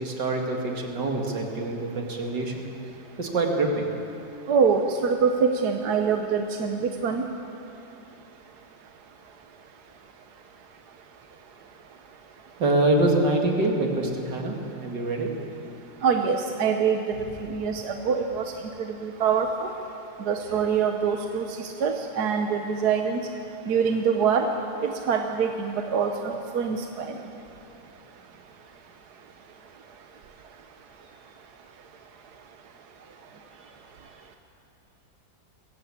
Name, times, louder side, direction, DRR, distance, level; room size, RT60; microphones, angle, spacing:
voice 1, 0.0-2.5 3.2-3.9 12.6-14.6 14.8-15.3, right 2 dB, 85° right, 1 dB, 2.9 m, -25 dB
voice 2, 4.5-7.2 16.0-17.2 17.5-18.4 18.8-19.7 20.3-23.2 23.7-24.5 24.8-27.1, right 6 dB, 70° right, 5 dB, 1.5 m, -24 dB
21.5 x 16.0 x 8.6 m, 2.7 s
omnidirectional pair, 1.8 m